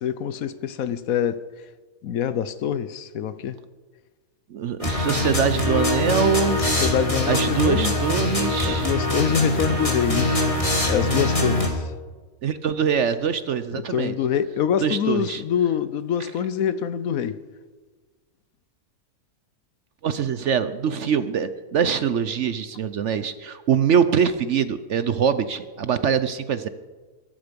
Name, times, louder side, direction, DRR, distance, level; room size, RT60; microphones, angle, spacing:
voice 1, 0.0-1.4 2.0-3.6 6.8-7.9 8.6-10.5 10.9-11.8 13.7-17.4, left 9 dB, 70° left, 1.1 m, -25 dB
voice 2, 4.5-6.7 7.2-8.9 9.7-9.8 12.4-14.1 14.8-15.4 16.2-16.3 20.0-26.7, right 7 dB, 60° right, 0.9 m, -23 dB
sound 1, 4.8-11.7, left 1 dB, 20° left, 2.3 m, -23 dB
23.0 x 11.5 x 5.2 m
omnidirectional pair, 1.6 m